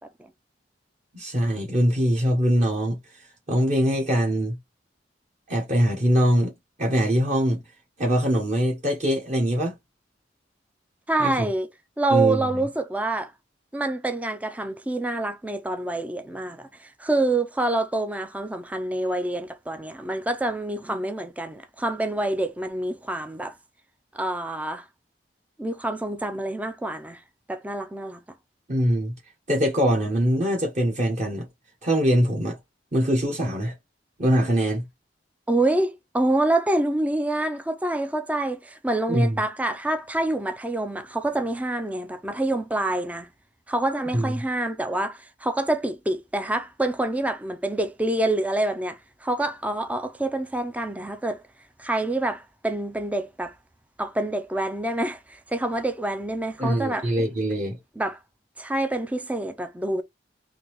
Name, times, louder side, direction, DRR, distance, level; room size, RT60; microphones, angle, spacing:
voice 1, 1.1-3.0 3.5-4.6 5.5-6.5 6.8-7.6 8.0-9.7 11.2-11.5 12.1-12.5 28.7-29.1 29.5-31.5 31.8-32.6 32.9-33.7 34.2-34.8 39.1-39.4 44.1-44.4 56.6-57.8, equal, 40° right, 1.2 m, -22 dB
voice 2, 11.1-11.7 12.0-13.3 13.7-23.5 24.1-24.8 25.6-27.2 27.5-28.2 35.5-43.3 43.7-51.4 51.8-53.5 54.0-57.1 58.0-58.2 58.6-60.0, right 2 dB, 10° right, 0.4 m, -27 dB
3.8 x 2.8 x 3.0 m
head